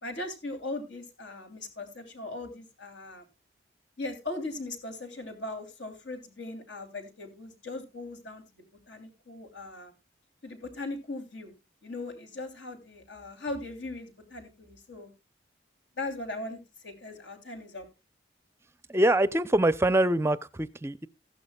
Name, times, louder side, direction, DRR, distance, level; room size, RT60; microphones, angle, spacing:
voice 1, 0.0-3.2 4.0-8.4 8.9-9.9 10.4-11.5 11.8-15.1 16.0-17.8, left 2 dB, 75° left, 3.1 m, -39 dB
voice 2, 18.9-21.1, right 1 dB, 15° right, 0.5 m, -24 dB
15.5 x 11.5 x 2.3 m
head